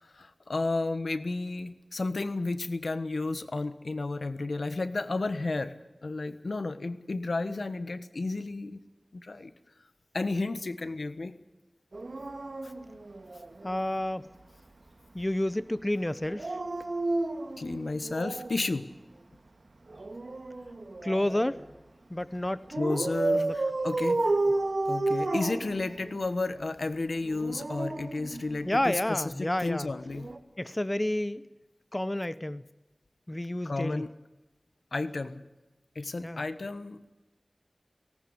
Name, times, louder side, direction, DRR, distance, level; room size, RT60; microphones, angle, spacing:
voice 1, 0.0-5.7 6.0-8.8 9.1-9.5 10.1-11.4 12.6-12.7 17.6-18.9 22.8-24.5 24.9-30.3 33.6-34.1 34.9-35.4 35.9-37.1, left 3 dB, 90° left, 12 dB, 1.3 m, -32 dB
Dog, 11.9-13.8 16.2-18.6 19.9-21.6 22.7-26.3 27.2-28.9 30.2-30.4, right 2 dB, 75° right, 2.6 m, -31 dB
voice 2, 13.6-14.3 15.1-16.6 21.0-21.6 22.1-22.7 23.3-23.6 28.6-29.9 30.6-31.4 31.9-32.6 33.3-34.0 36.2-36.4, left 1 dB, 25° left, 16 dB, 0.8 m, -30 dB
18.5 x 18.0 x 9.8 m, 1.0 s
wide cardioid pair, 55°, 0 cm